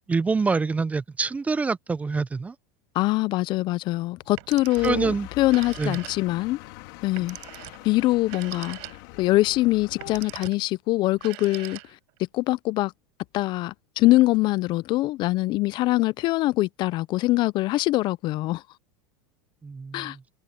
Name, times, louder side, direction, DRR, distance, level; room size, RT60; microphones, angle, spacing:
voice 1, 0.1-2.5 4.8-5.3 5.8-6.0 19.6-20.2, right 4 dB, 10° right, 0.5 m, -25 dB
voice 2, 3.0-6.6 7.0-7.4 7.8-8.8 9.2-11.8 12.3-12.9 13.3-18.6 19.9-20.2, left 18 dB, 40° left, 0.4 m, -23 dB
Telephone, 4.2-5.1 5.4-6.5 7.2-9.3 9.9-10.7 11.1-12.2, right 33 dB, 60° right, 7.4 m, -42 dB
sound 1, 4.7-10.3, left 23 dB, 60° left, 2.1 m, -43 dB
supercardioid pair, 125°, 11 cm